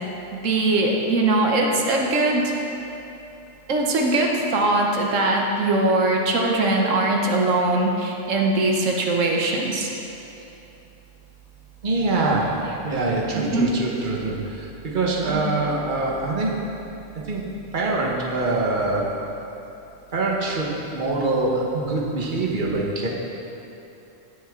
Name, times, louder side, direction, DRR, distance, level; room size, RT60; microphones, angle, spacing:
voice 1, 0.3-2.5 3.7-9.9 13.3-13.7 15.3-15.4, right 2 dB, 85° right, 0 dB, 1.3 m, -21 dB
voice 2, 11.8-12.5 12.8-16.5 17.3-17.4 17.7-19.0 20.1-23.1, right 2 dB, 40° right, -3 dB, 1.5 m, -24 dB
16.0 x 7.1 x 3.7 m, 2.9 s
omnidirectional pair, 1.3 m